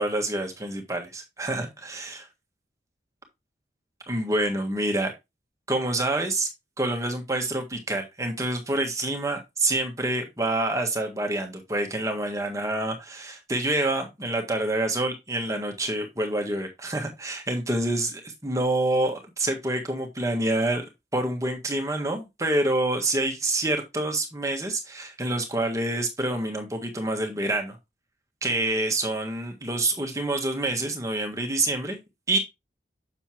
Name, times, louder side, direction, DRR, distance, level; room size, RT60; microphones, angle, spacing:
voice 1, 0.0-2.3 4.1-5.1 5.7-6.5 6.8-27.8 28.4-32.0 32.3-32.4, right 2 dB, 20° right, 3 dB, 1.6 m, -27 dB
7.1 x 7.0 x 2.9 m, 0.22 s
head